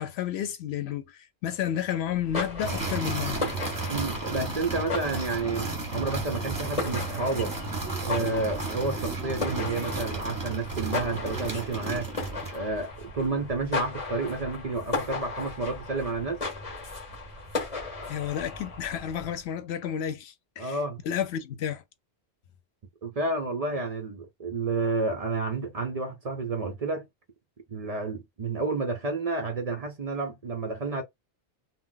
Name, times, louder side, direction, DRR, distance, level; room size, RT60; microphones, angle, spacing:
voice 1, 0.0-3.5 18.1-20.8 21.1-21.8, left 9 dB, 80° left, 0.9 m, -31 dB
sound 1, 2.1-19.4, left 3 dB, 35° left, 1.3 m, -36 dB
sound 2, 2.6-12.6, right 3 dB, 20° right, 0.9 m, -33 dB
voice 2, 3.9-7.5 8.0-12.1 12.5-16.4 20.6-21.0 23.0-27.1 27.7-31.0, right 3 dB, 50° right, 0.5 m, -30 dB
2.4 x 2.1 x 3.8 m
omnidirectional pair, 1.1 m